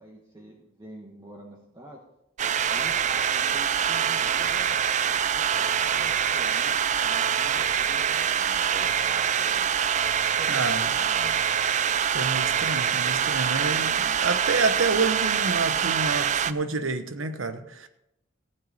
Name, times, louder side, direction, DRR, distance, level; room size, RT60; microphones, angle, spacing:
voice 1, 0.0-2.0 2.7-4.8 5.3-9.7 10.3-11.4, right 1 dB, 20° right, -3 dB, 1.4 m, -46 dB
sound 1, 2.4-16.5, right 8 dB, 40° right, 0.4 m, -25 dB
voice 2, 10.5-10.9 12.1-17.9, right 3 dB, 85° right, 9 dB, 1.0 m, -28 dB
15.0 x 9.2 x 4.2 m, 0.82 s
head